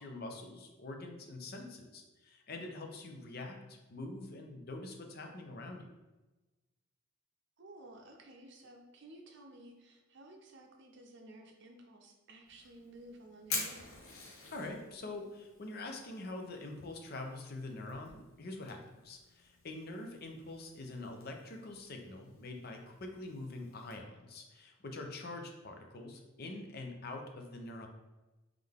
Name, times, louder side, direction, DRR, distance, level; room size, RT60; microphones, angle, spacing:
voice 1, 0.0-5.9 14.5-27.9, left 2 dB, 45° left, 3 dB, 0.5 m, -45 dB
voice 2, 7.6-14.2, right 1 dB, 55° right, 3 dB, 0.6 m, -54 dB
Fire, 12.5-24.0, left 3 dB, 70° left, 1.0 m, -48 dB
3.7 x 3.2 x 3.5 m, 1.1 s
head